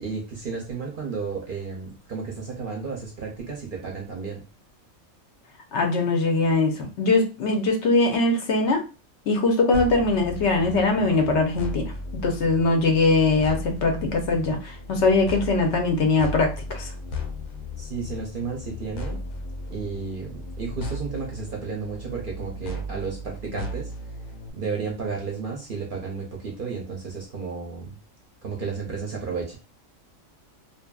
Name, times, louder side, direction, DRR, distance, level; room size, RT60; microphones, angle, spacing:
voice 1, 0.0-4.4 17.8-19.2 19.7-23.9 24.5-28.0 28.4-29.6, right 5 dB, 55° right, -1 dB, 0.6 m, -33 dB
voice 2, 5.7-8.8 9.3-11.9 12.2-16.9, left 3 dB, 65° left, 3 dB, 0.8 m, -21 dB
sound 1, 9.7-24.5, left 1 dB, 85° left, 1.0 m, -35 dB
2.7 x 2.5 x 2.2 m, 0.32 s
omnidirectional pair, 1.4 m